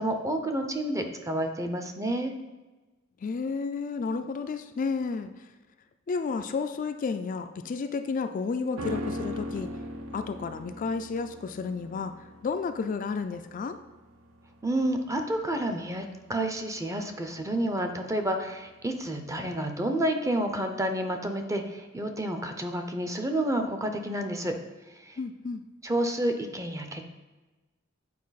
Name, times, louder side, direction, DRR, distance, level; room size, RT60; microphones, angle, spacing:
voice 1, 0.0-2.3 14.6-24.5 25.0-25.2 25.8-27.1, right 1 dB, 15° right, 5 dB, 0.6 m, -30 dB
voice 2, 3.2-5.3 6.1-9.7 10.1-12.1 12.4-13.8 25.2-25.6, left 4 dB, 40° left, 8 dB, 0.3 m, -31 dB
sound 1, 8.8-18.2 18.5-18.6, equal, 85° right, 0.6 m, -40 dB
8.5 x 4.7 x 4.0 m, 1.2 s
head